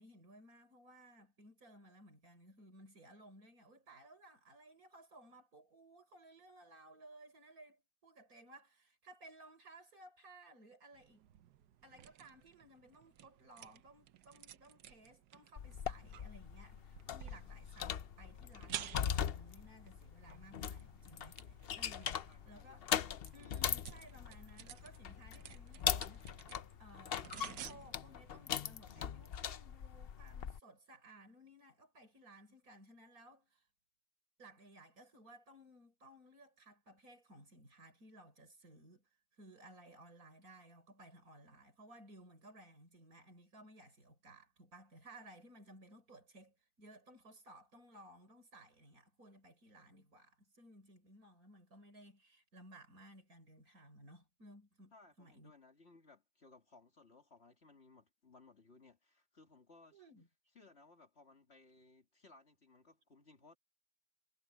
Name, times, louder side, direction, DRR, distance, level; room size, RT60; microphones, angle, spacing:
voice 1, 0.0-11.3 11.8-22.9 23.3-26.3 26.8-33.7 34.4-39.1 39.4-55.5 59.9-60.3, right 1 dB, 60° right, 5.6 m, -59 dB
sound 1, 10.9-29.5, right 10 dB, 85° right, 1.5 m, -54 dB
sound 2, 15.6-30.6, left 8 dB, 55° left, 0.6 m, -41 dB
voice 2, 22.2-23.7 54.9-60.0 60.5-63.6, left 3 dB, 40° left, 2.7 m, -63 dB
omnidirectional pair, 1.7 m